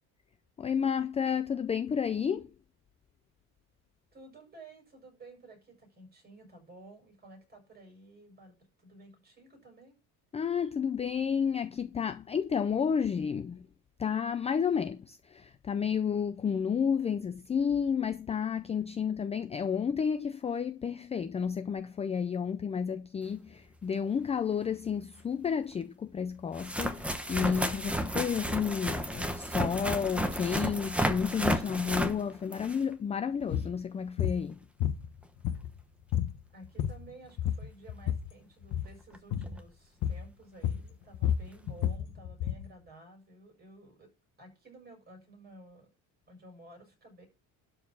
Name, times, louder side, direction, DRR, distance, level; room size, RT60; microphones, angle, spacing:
voice 1, 0.6-2.5 10.3-13.7 14.0-34.6, left 7 dB, 20° left, 0.4 m, -31 dB
voice 2, 4.1-10.0 36.5-44.1 44.4-45.9 46.3-47.3, right 2 dB, 25° right, 7.2 m, -53 dB
sound 1, 24.4-24.5 25.7-25.8 26.5-32.9 38.0-38.1 39.1-39.2 39.4-39.6 41.5-41.6, equal, 5° right, 1.0 m, -32 dB
sound 2, 33.4-33.7 34.2-34.4 34.8-35.8 36.1-36.4 36.6-37.1 37.4-38.3 38.6-38.9 39.3-39.5 40.0-40.3 40.6-42.7, left 10 dB, 60° left, 1.2 m, -31 dB
12.0 x 4.8 x 6.1 m
cardioid pair, 140°, 36 cm